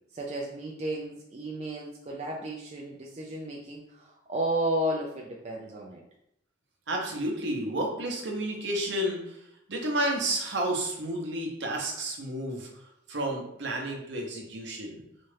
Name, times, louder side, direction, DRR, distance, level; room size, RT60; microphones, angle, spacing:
voice 1, 0.1-6.0, right 1 dB, 35° right, -2 dB, 0.4 m, -33 dB
voice 2, 6.9-15.0, right 1 dB, 65° right, 0 dB, 0.8 m, -31 dB
4.2 x 2.4 x 3.3 m, 0.76 s
head